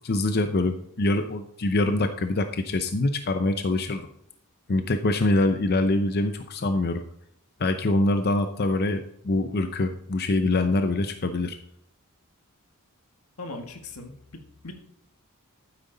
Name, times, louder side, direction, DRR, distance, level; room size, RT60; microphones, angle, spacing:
voice 1, 0.0-4.1 4.7-7.0 7.6-11.6, left 2 dB, 45° left, 8 dB, 0.7 m, -24 dB
voice 2, 13.4-14.7, left 2 dB, 90° left, 5 dB, 1.8 m, -39 dB
12.5 x 9.2 x 3.9 m, 0.73 s
head